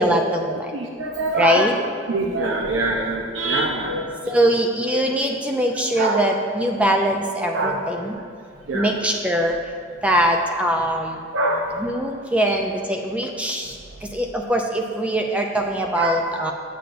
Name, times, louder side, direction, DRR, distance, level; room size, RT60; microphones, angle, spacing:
voice 1, 0.0-0.7 1.3-1.7 4.3-8.1 8.7-9.6 10.0-11.2 11.8-13.8 14.1-16.5, equal, 5° right, 2 dB, 0.4 m, -22 dB
voice 2, 0.7-1.7 2.1-4.4 6.0-6.2 7.5-7.8 8.7-9.0 11.3-11.7 12.5-12.6 16.0-16.2, right 2 dB, 75° right, 0 dB, 0.6 m, -24 dB
8.4 x 7.7 x 2.6 m, 2.2 s
head